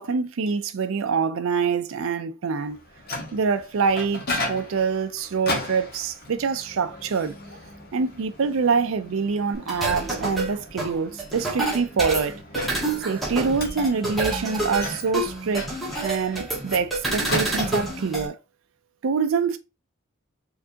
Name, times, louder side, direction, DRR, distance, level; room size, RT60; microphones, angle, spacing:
voice 1, 0.0-2.8 3.3-4.2 4.5-7.4 7.9-12.4 13.0-15.7 16.0-18.4 19.0-19.6, right 5 dB, 70° right, 0.4 m, -25 dB
Microwave oven, 2.7-18.2, left 2 dB, 50° left, 1.3 m, -36 dB
sound 1, 9.7-18.3, right 2 dB, ahead, 1.5 m, -28 dB
4.5 x 3.6 x 2.8 m
head